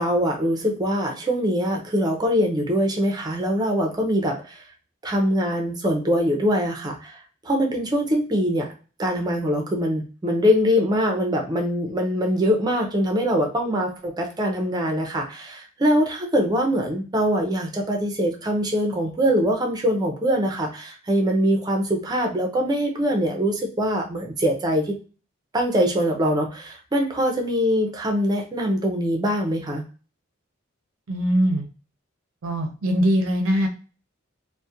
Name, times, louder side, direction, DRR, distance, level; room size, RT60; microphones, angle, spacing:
voice 1, 0.0-4.6 5.0-7.2 7.5-8.7 9.0-25.0 25.5-29.8, equal, 20° right, 2 dB, 0.5 m, -23 dB
voice 2, 31.1-31.7 32.4-33.7, equal, 70° right, 5 dB, 0.5 m, -21 dB
2.3 x 2.1 x 2.7 m, 0.35 s
head